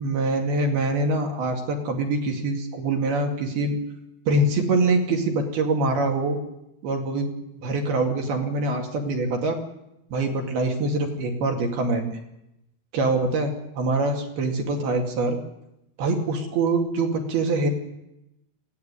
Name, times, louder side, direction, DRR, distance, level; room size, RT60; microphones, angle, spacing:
voice 1, 0.0-3.8 4.3-6.4 6.8-7.3 7.6-9.6 10.1-12.2 12.9-15.4 16.0-17.7, right 2 dB, 75° right, 3 dB, 4.3 m, -24 dB
20.0 x 16.0 x 9.8 m, 0.89 s
omnidirectional pair, 4.5 m